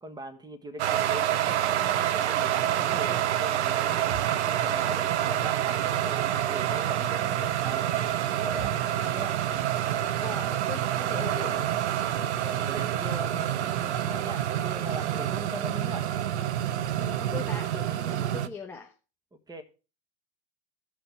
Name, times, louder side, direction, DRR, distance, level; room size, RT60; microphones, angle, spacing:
voice 1, 0.0-4.1 4.5-8.7 9.0-9.4 12.4-16.1 19.3-19.6, right 1 dB, 10° right, 1.3 m, -41 dB
sound 1, 0.8-18.5, right 11 dB, 80° right, 0.7 m, -27 dB
sound 2, 4.1-4.8 5.0-5.5 5.9-6.8 7.1-7.6 7.9-9.4, right 6 dB, 45° right, 4.5 m, -46 dB
voice 2, 10.2-11.8 15.1-15.3 16.9-18.9, left 5 dB, 5° left, 0.9 m, -40 dB
15.5 x 6.1 x 3.4 m
hypercardioid pair, 110°, 33 cm